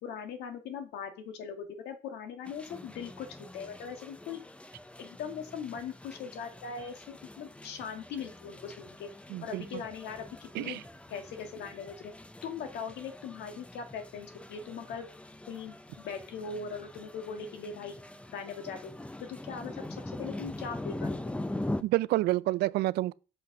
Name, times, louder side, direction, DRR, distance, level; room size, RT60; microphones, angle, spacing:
voice 1, 0.0-4.4 5.0-9.1 9.4-10.8 11.1-12.1 12.4-15.1 15.5-18.0 18.3-18.9 19.2-21.3, left 6 dB, 80° left, 1.9 m, -40 dB
sound 1, 2.5-21.8, left 1 dB, 5° left, 0.6 m, -43 dB
voice 2, 9.3-9.6 10.5-10.8 21.8-23.1, right 17 dB, 75° right, 0.4 m, -28 dB
6.4 x 5.7 x 5.9 m
cardioid pair, 110°, 17 cm